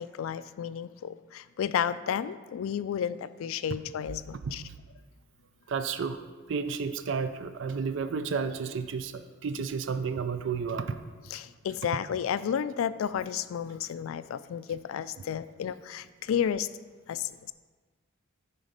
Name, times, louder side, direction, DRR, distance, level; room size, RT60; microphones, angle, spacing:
voice 1, 0.0-4.6 11.3-16.7 17.1-17.5, left 8 dB, 80° left, 15 dB, 0.3 m, -32 dB
voice 2, 5.7-6.2 6.5-11.0, right 5 dB, 60° right, 10 dB, 0.4 m, -31 dB
9.3 x 3.9 x 5.1 m, 1.4 s
head